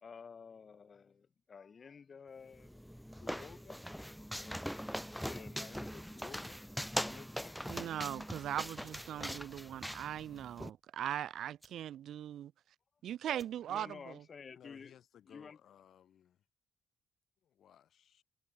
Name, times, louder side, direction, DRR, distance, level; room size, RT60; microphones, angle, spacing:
voice 1, 0.0-2.8 3.2-3.8 4.4-4.6 4.9-6.6 7.0-7.6 13.7-14.9 15.3-15.6, left 6 dB, 50° left, 1.4 m, -52 dB
sound 1, 2.5-10.7, equal, ahead, 0.7 m, -42 dB
sound 2, 6.1-15.6, right 2 dB, 15° right, 7.6 m, -69 dB
voice 2, 7.7-12.5 13.0-14.2, right 11 dB, 75° right, 0.3 m, -40 dB
voice 3, 14.5-16.4 17.4-18.2, left 9 dB, 70° left, 6.3 m, -61 dB
supercardioid pair, 60°, 0 cm